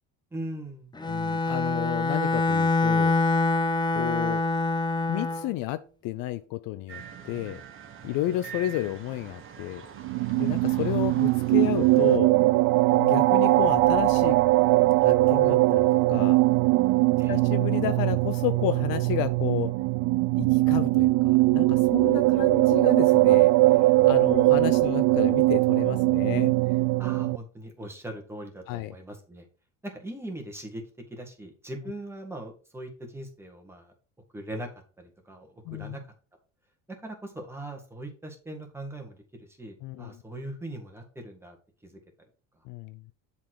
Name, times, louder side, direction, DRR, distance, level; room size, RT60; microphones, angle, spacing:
voice 1, 0.3-1.0 17.2-17.4 27.0-29.4 29.8-30.8 31.1-33.9 34.3-34.7 35.0-36.0 36.9-41.6 41.8-42.0, right 1 dB, 5° right, 2 dB, 1.7 m, -40 dB
Bowed string instrument, 1.0-5.5, left 3 dB, 10° left, 0.6 m, -25 dB
voice 2, 1.1-3.2 3.9-4.4 5.1-7.6 8.0-9.8 10.4-12.3 12.9-14.4 15.0-16.4 17.3-19.7 20.4-23.5 24.0-26.5 28.7-28.9 35.7-36.0 39.8-40.2 42.7-43.1, left 15 dB, 60° left, 14 dB, 0.6 m, -31 dB
sound 1, 6.9-12.2, right 7 dB, 35° right, 1.1 m, -43 dB
sound 2, 10.0-27.4, right 20 dB, 75° right, 0.6 m, -21 dB
7.3 x 4.3 x 4.7 m, 0.37 s
supercardioid pair, 105°, 38 cm